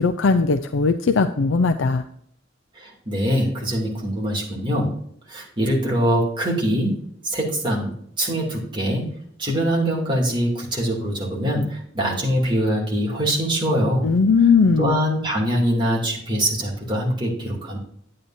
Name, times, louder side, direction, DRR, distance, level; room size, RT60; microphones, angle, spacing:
voice 1, 0.0-2.0 14.0-15.0, left 4 dB, 75° left, 8 dB, 0.5 m, -18 dB
voice 2, 2.8-5.0 5.3-9.1 9.4-14.1 14.8-17.8, equal, 25° right, -3 dB, 2.6 m, -23 dB
9.5 x 8.7 x 2.7 m, 0.67 s
head